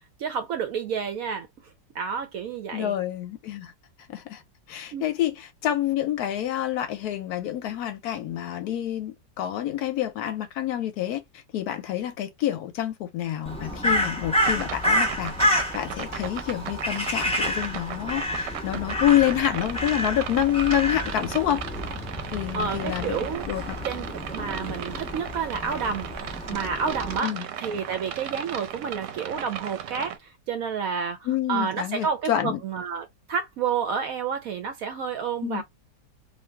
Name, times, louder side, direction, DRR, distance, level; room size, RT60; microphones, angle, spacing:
voice 1, 0.2-1.5 1.9-2.9 4.9-5.0 22.2-23.5 23.8-31.2 31.5-35.6, right 6 dB, 70° right, 0.9 m, -30 dB
voice 2, 2.7-3.7 4.1-4.4 4.7-11.2 11.5-21.6 22.3-23.2 23.5-23.8 27.2-27.4 31.3-32.6 35.4-35.6, left 11 dB, 70° left, 1.0 m, -27 dB
Crow, 13.4-27.2, equal, 10° left, 0.3 m, -29 dB
sound 1, 14.4-30.2, right 9 dB, 85° right, 1.2 m, -37 dB
2.8 x 2.5 x 3.2 m
omnidirectional pair, 1.9 m